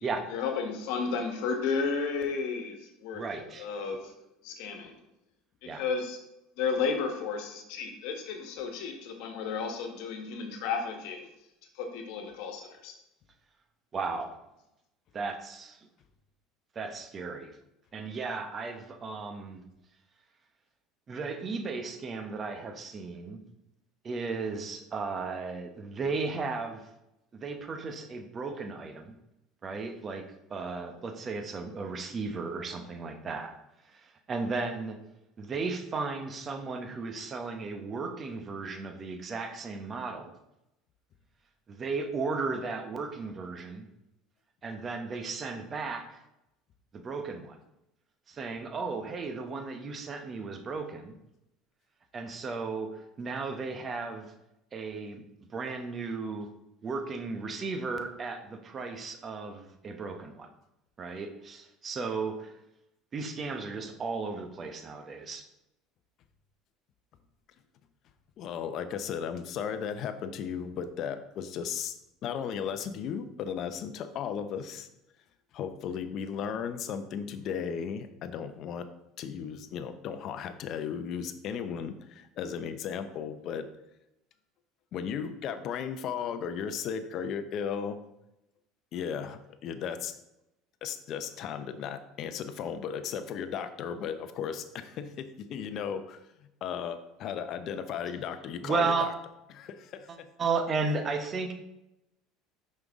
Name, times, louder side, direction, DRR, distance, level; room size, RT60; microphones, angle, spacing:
voice 1, 0.3-3.2 3.6-4.1 4.4-4.9 5.6-6.2 6.6-11.3 11.8-12.9, left 5 dB, 70° left, 4 dB, 1.3 m, -33 dB
voice 2, 3.1-3.7 5.6-5.8 13.9-14.3 15.1-15.9 16.7-17.6 17.9-19.6 21.1-23.4 24.0-26.9 27.3-29.2 29.6-33.5 33.8-35.0 35.4-40.3 41.7-43.9 44.6-46.2 46.9-47.6 48.3-51.2 52.1-54.3 54.7-55.2 55.5-56.5 56.8-60.5 61.0-62.5 63.1-65.4 98.6-99.1 100.1-101.5, right 4 dB, 30° right, 7 dB, 0.8 m, -35 dB
voice 3, 68.4-71.9 72.2-74.9 75.5-78.9 79.2-83.7 84.9-88.0 88.9-90.1 90.8-96.3 96.6-99.1 99.5-100.3, left 7 dB, 50° left, 9 dB, 0.6 m, -35 dB
5.8 x 5.3 x 3.6 m, 0.86 s
supercardioid pair, 120°, 0 cm